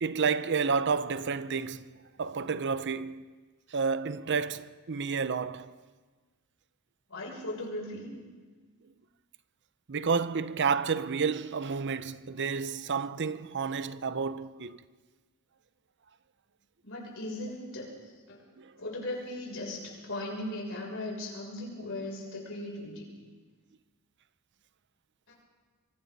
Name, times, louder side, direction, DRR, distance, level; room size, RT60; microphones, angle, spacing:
voice 1, 0.0-3.2 3.7-5.7 9.9-14.8 18.6-18.7, right 5 dB, 55° right, 0.7 m, -30 dB
voice 2, 7.1-8.1 16.8-17.9 18.3-18.4 18.8-23.1, left 1 dB, 65° left, 7.2 m, -38 dB
26.0 x 24.0 x 4.1 m
head